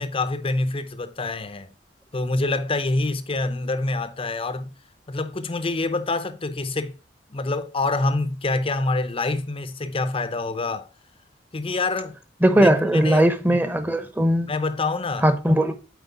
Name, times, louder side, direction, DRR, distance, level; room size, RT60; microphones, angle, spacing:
voice 1, 0.0-1.7 2.1-4.7 5.1-7.0 7.3-10.9 11.5-12.2 12.5-13.3 14.4-15.3, left 2 dB, 30° left, 0.6 m, -26 dB
voice 2, 12.4-14.5 15.2-15.7, right 1 dB, 10° right, 0.8 m, -19 dB
8.2 x 4.4 x 3.9 m
head